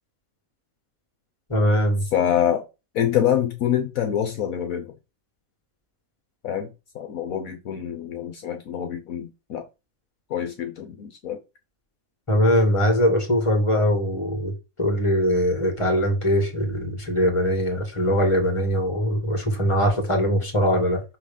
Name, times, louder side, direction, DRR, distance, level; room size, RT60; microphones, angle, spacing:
voice 1, 1.5-2.0 12.3-14.5 14.8-21.0, equal, 20° left, 2.3 m, -21 dB
voice 2, 2.1-2.6 2.9-5.0 6.4-9.7 10.3-11.4, left 10 dB, 65° left, 1.2 m, -26 dB
6.1 x 3.9 x 5.4 m
omnidirectional pair, 1.6 m